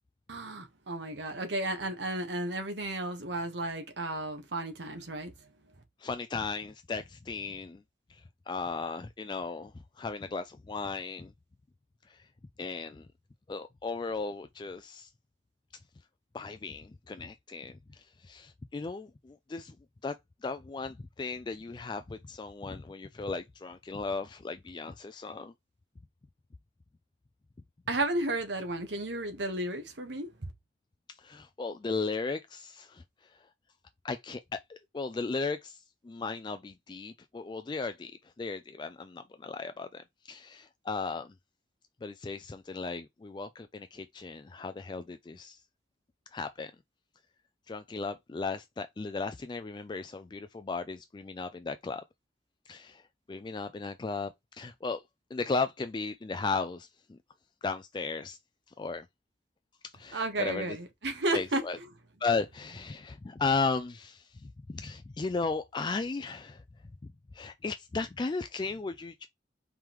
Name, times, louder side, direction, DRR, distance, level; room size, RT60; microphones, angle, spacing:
voice 1, 0.3-5.3 27.9-30.3 60.1-61.6, right 2 dB, 85° right, 1.2 m, -33 dB
voice 2, 6.0-7.8 8.1-11.3 12.1-12.3 12.6-13.1 13.5-15.1 16.3-19.8 20.0-20.1 20.4-25.5 31.1-33.0 33.3-33.5 34.0-41.3 42.0-45.6 46.3-46.7 47.7-52.0 52.7-53.0 53.3-55.0 55.3-57.2 57.6-58.4 58.8-59.1 59.8-60.8 61.3-61.8 62.2-66.6 67.0-69.3, left 4 dB, 25° left, 0.3 m, -36 dB
4.7 x 3.6 x 3.0 m
head